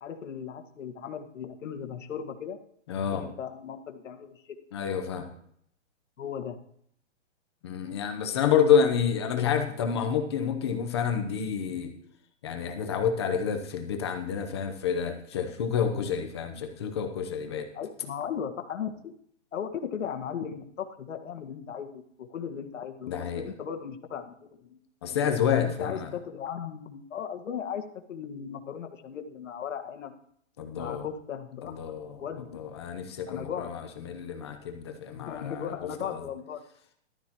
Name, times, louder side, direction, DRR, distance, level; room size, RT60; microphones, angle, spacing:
voice 1, 0.0-2.6 3.1-4.4 6.2-6.6 17.7-19.1 19.5-24.8 25.1-25.2 25.6-27.8 28.1-30.1 30.8-31.9 32.2-32.6 33.3-33.9 35.1-36.6, left 8 dB, 85° left, 4 dB, 1.8 m, -37 dB
voice 2, 2.9-3.2 4.7-5.3 7.6-11.9 12.4-17.7 23.1-23.4 25.0-26.1 30.6-31.0 31.6-32.2 32.5-35.7 36.0-36.2, left 7 dB, 20° left, 4 dB, 0.8 m, -28 dB
14.5 x 12.0 x 3.0 m, 0.67 s
hypercardioid pair, 180°, 37 cm